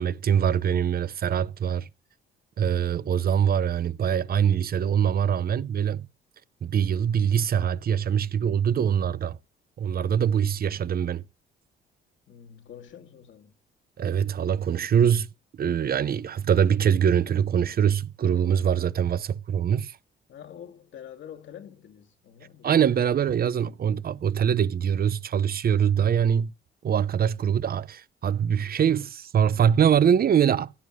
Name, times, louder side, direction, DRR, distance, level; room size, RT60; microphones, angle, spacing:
voice 1, 0.0-1.9 2.6-6.1 6.6-9.4 9.8-11.2 14.0-15.3 15.6-20.0 22.6-26.5 26.8-30.7, right 8 dB, 50° right, 0.8 m, -23 dB
voice 2, 12.3-13.5 20.3-22.7, left 9 dB, 70° left, 2.4 m, -46 dB
16.0 x 9.3 x 6.6 m
cardioid pair, 90°, 20 cm